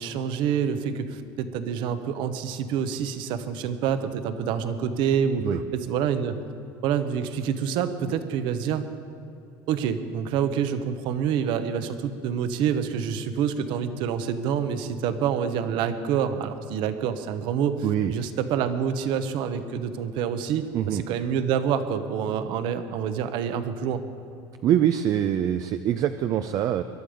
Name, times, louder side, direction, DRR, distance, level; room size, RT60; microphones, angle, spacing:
voice 1, 0.0-6.4 6.8-8.9 9.7-24.0, right 8 dB, 60° right, 10 dB, 1.0 m, -27 dB
voice 2, 24.6-26.8, right 10 dB, 40° right, 9 dB, 0.5 m, -24 dB
22.0 x 12.0 x 5.1 m, 2.7 s
cardioid pair, 155°, 9 cm